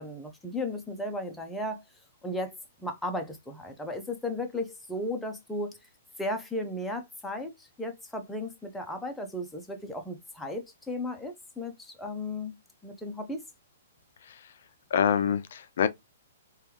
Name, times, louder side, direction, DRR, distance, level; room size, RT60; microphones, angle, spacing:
voice 1, 0.0-1.8 2.2-2.6 2.8-5.8 6.2-12.6 12.8-13.4, left 1 dB, 5° left, 0.6 m, -35 dB
voice 2, 14.9-15.9, left 8 dB, 65° left, 0.4 m, -26 dB
3.4 x 2.3 x 2.9 m
hypercardioid pair, 145°, 0 cm